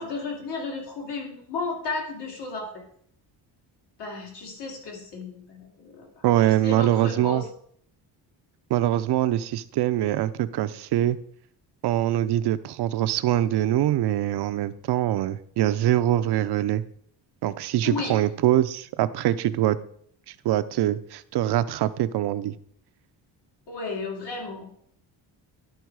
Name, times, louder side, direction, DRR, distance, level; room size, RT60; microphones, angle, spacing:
voice 1, 0.0-2.8 4.0-7.4 17.8-18.2 23.7-24.8, left 3 dB, 70° left, -1 dB, 2.9 m, -34 dB
voice 2, 6.2-7.4 8.7-11.2 11.8-16.8 17.4-19.8 20.3-22.5, right 12 dB, 70° right, 13 dB, 0.6 m, -23 dB
11.5 x 4.7 x 4.7 m, 0.64 s
cardioid pair, 165°, 42 cm